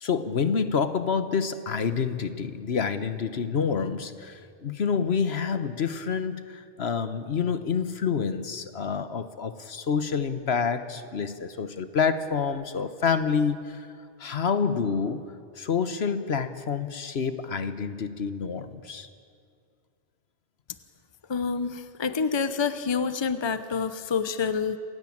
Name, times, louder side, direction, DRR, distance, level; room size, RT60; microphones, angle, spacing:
voice 1, 0.0-13.9 14.2-15.2 15.6-19.1, left 6 dB, 65° left, 11 dB, 1.2 m, -28 dB
voice 2, 21.3-24.8, left 5 dB, 25° left, 12 dB, 0.9 m, -27 dB
28.0 x 16.5 x 8.6 m, 2.3 s
omnidirectional pair, 1.2 m